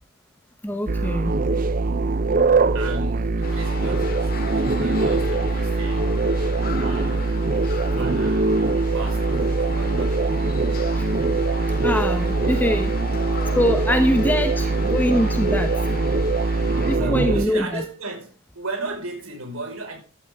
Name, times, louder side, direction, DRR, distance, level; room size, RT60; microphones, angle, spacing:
voice 1, 0.6-1.4 10.9-11.0 11.8-12.9 13.5-15.7 16.9-17.8, equal, 10° left, 0.9 m, -23 dB
sound 1, 0.9-17.5, right 3 dB, 40° right, 0.5 m, -22 dB
voice 2, 2.7-6.2 6.6-10.3 12.4-13.1 14.6-14.9 16.5-20.0, right 2 dB, 75° right, 4.9 m, -36 dB
sound 2, 3.4-17.0, left 4 dB, 45° left, 2.0 m, -37 dB
15.0 x 12.5 x 3.5 m
head